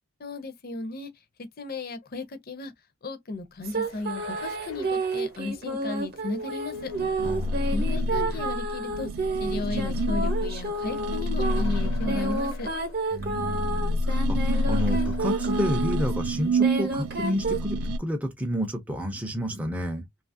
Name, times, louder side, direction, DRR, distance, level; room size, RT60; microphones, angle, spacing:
voice 1, 0.2-1.1 1.6-2.7 3.0-6.9 7.7-9.1 9.4-12.7, left 3 dB, 40° left, 0.5 m, -35 dB
sound 1, 3.6-16.1 16.6-17.6, right 2 dB, 45° right, 0.8 m, -31 dB
sound 2, 3.7-8.4 9.3-13.5 13.8-13.9 14.5-16.1, left 3 dB, 85° left, 1.1 m, -46 dB
sound 3, 6.7-12.8 13.2-18.0, equal, 80° right, 0.3 m, -28 dB
voice 2, 7.2-7.8 13.1-20.0, equal, 5° right, 0.4 m, -30 dB
2.8 x 2.4 x 2.5 m
head